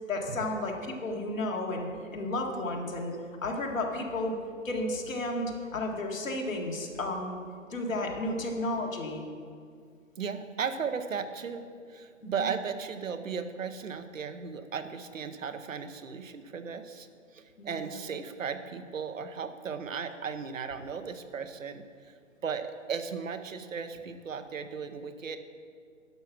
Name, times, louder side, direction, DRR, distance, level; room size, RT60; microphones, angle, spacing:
voice 1, 0.1-4.3 4.6-7.4 7.7-9.2 17.6-18.0, left 2 dB, 80° left, 1 dB, 1.9 m, -33 dB
voice 2, 10.2-17.1 17.3-22.1 22.4-25.4, right 6 dB, 75° right, 9 dB, 0.9 m, -36 dB
11.0 x 5.8 x 5.9 m, 2.2 s
figure-of-eight pair, 135°, 39 cm